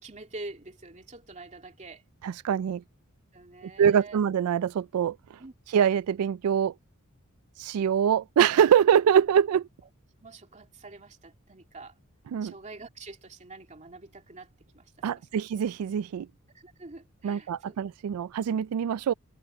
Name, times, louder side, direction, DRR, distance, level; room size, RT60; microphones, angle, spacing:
voice 1, 0.0-2.0 3.3-4.2 5.4-5.5 10.2-11.9 12.4-15.4 16.5-17.8, right 2 dB, 35° right, 2.6 m, -46 dB
voice 2, 2.2-2.8 3.8-5.2 5.7-6.7 7.6-9.7 12.3-12.5 15.0-16.3 17.2-19.1, right 8 dB, 90° right, 0.3 m, -24 dB
head